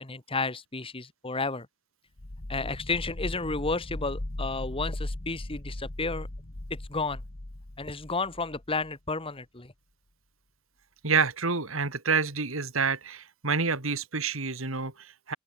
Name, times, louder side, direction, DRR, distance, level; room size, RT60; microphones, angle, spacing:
voice 1, 0.0-1.7 2.5-6.3 6.7-7.2 7.8-9.7, left 3 dB, 25° left, 1.8 m, -32 dB
sound 1, 2.2-8.9, left 1 dB, 45° left, 1.5 m, -38 dB
voice 2, 11.0-15.4, right 5 dB, 70° right, 2.8 m, -28 dB
open air
head